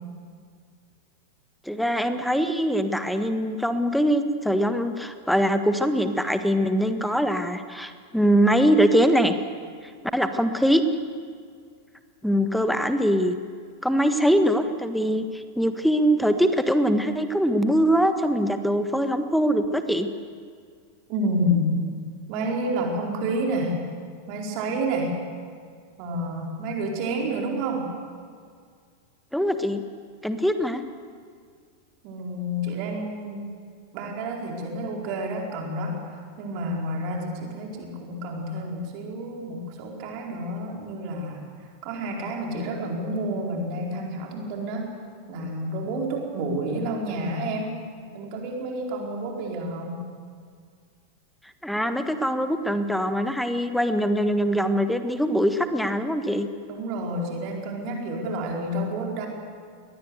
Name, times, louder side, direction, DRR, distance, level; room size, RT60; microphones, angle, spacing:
voice 1, 1.6-9.4 10.1-10.8 12.2-13.4 13.8-20.1 29.3-29.8 30.2-30.8 51.6-56.5, equal, ahead, 9 dB, 1.5 m, -22 dB
voice 2, 21.1-21.7 22.3-23.8 24.3-25.1 26.0-27.8 32.0-33.4 33.9-41.5 41.8-44.9 45.3-47.7 48.1-50.0 56.7-59.3, right 1 dB, 45° right, 0 dB, 4.4 m, -29 dB
23.5 x 18.5 x 8.1 m, 2.1 s
figure-of-eight pair, 90°, 0 cm